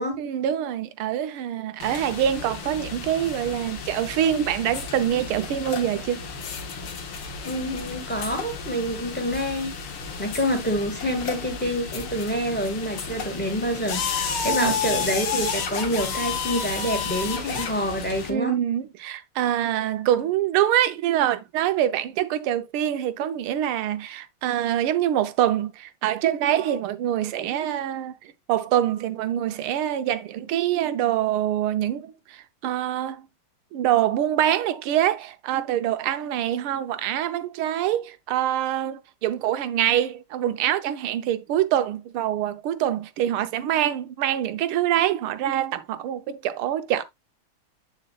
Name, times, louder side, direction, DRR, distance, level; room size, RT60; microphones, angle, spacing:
voice 1, 0.2-6.3 14.5-14.7 18.3-33.3 33.7-47.0, right 11 dB, 85° right, 1.6 m, -25 dB
sound 1, 1.8-18.3, left 5 dB, 80° left, 2.2 m, -32 dB
voice 2, 7.4-9.7 10.2-18.5, equal, 5° left, 1.5 m, -27 dB
8.6 x 6.6 x 2.3 m
omnidirectional pair, 2.3 m